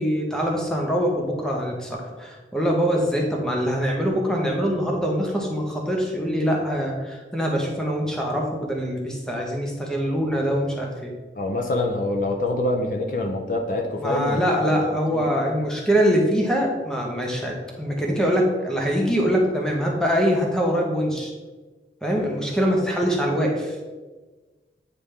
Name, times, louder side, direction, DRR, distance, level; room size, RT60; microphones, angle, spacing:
voice 1, 0.0-11.1 14.0-21.3 22.0-23.8, equal, 5° left, -1 dB, 0.9 m, -23 dB
voice 2, 11.4-14.4 14.7-14.9 15.1-15.2, left 2 dB, 50° left, 2 dB, 0.6 m, -25 dB
9.3 x 3.4 x 3.3 m, 1.3 s
head